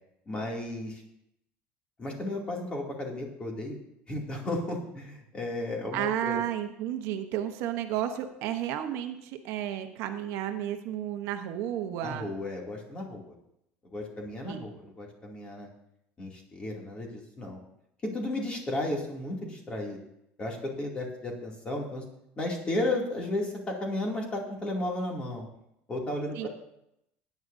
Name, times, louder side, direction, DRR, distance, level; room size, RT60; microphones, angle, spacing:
voice 1, 0.3-1.0 2.0-3.8 4.1-6.4 12.0-13.3 13.9-15.7 16.2-17.6 18.1-20.0 20.4-22.0 22.4-25.5 25.9-26.5, left 1 dB, 20° left, -1 dB, 2.6 m, -34 dB
voice 2, 5.9-12.3 14.5-14.6 26.3-26.5, right 11 dB, 65° right, 6 dB, 1.0 m, -32 dB
19.5 x 9.5 x 2.7 m, 0.79 s
cardioid pair, 145°, 5 cm